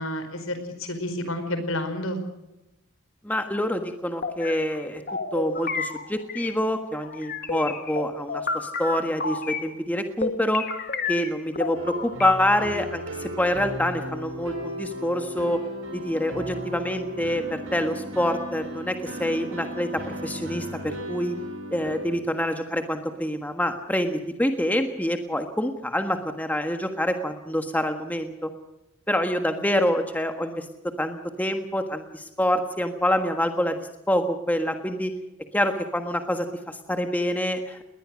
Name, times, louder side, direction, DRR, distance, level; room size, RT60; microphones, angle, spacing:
voice 1, 0.0-2.2 29.4-29.5, left 1 dB, 75° left, 8 dB, 4.7 m, -30 dB
voice 2, 3.2-5.0 5.3-10.6 11.1-15.6 15.9-21.4 21.7-28.5 29.1-33.8 34.1-35.1 35.5-37.8, equal, 5° left, 6 dB, 1.5 m, -26 dB
sound 1, 4.2-6.6 6.9-9.7 10.2-12.3, left 4 dB, 45° left, 1.8 m, -31 dB
sound 2, 11.7-22.2, equal, 70° right, 7.1 m, -36 dB
20.5 x 20.0 x 6.4 m, 0.95 s
head